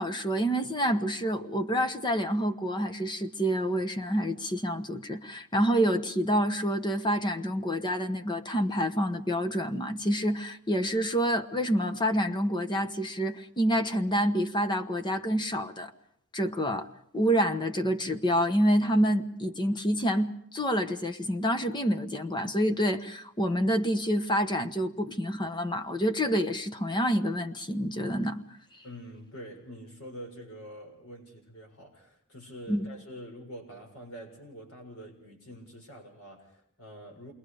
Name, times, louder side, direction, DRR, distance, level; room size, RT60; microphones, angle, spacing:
voice 1, 0.0-15.9 16.3-16.9 17.1-28.4 32.7-32.9, equal, 20° left, 1.1 m, -27 dB
voice 2, 28.8-37.3, equal, 70° left, 6.8 m, -45 dB
28.0 x 22.0 x 5.0 m
head